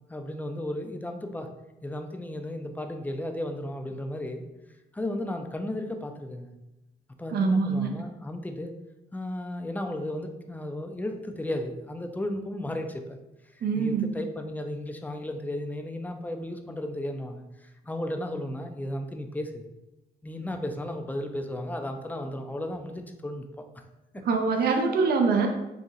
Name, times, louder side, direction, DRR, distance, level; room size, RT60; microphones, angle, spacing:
voice 1, 0.1-1.5 1.8-4.4 4.9-6.5 7.2-8.7 9.1-13.2 13.5-19.7 20.2-23.8, left 1 dB, 10° left, 5 dB, 0.3 m, -34 dB
voice 2, 7.3-8.0 13.6-14.1 24.2-25.5, right 4 dB, 65° right, 4 dB, 0.5 m, -24 dB
4.0 x 2.8 x 2.5 m, 0.97 s
cardioid pair, 110°, 18 cm